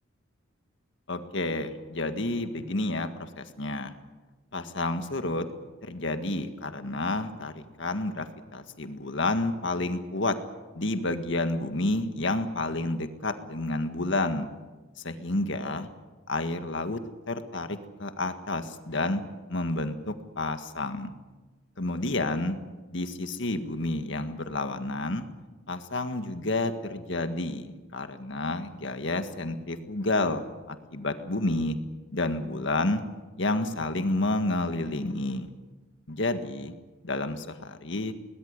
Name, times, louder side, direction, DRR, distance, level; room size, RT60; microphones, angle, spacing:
voice 1, 1.1-3.9 4.5-5.5 5.8-10.4 10.7-14.5 15.0-15.9 16.3-17.0 17.3-19.2 19.5-21.1 21.8-22.6 22.9-25.3 25.7-30.5 30.9-31.8 32.1-33.0 33.4-35.5 36.1-36.7 37.0-38.1, left 2 dB, 60° left, 8 dB, 1.8 m, -30 dB
22.0 x 19.5 x 9.8 m, 1.2 s
head